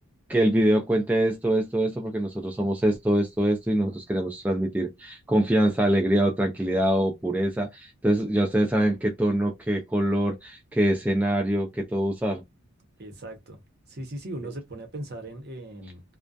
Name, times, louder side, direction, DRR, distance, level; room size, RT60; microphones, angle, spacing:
voice 1, 0.3-12.4, right 1 dB, 5° right, 0.3 m, -24 dB
voice 2, 13.0-13.6 13.9-16.0, right 1 dB, 45° right, 0.7 m, -38 dB
2.3 x 2.1 x 2.5 m
head